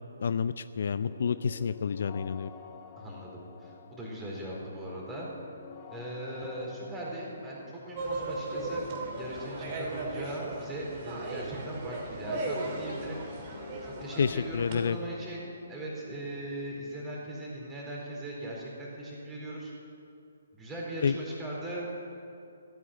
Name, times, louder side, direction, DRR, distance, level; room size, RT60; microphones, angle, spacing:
voice 1, 0.2-2.5 14.2-15.0 21.0-21.1, left 6 dB, 50° left, 13 dB, 0.4 m, -29 dB
sound 1, 1.0-18.7, left 5 dB, 30° left, 1.1 m, -50 dB
voice 2, 3.0-5.3 5.9-8.9 9.2-13.2 13.8-19.7 20.5-21.9, right 1 dB, 10° right, -4 dB, 4.2 m, -39 dB
sound 2, 8.0-14.8, right 2 dB, 30° right, 2.6 m, -37 dB
15.5 x 9.2 x 9.0 m, 2.5 s
figure-of-eight pair, 130°, 0 cm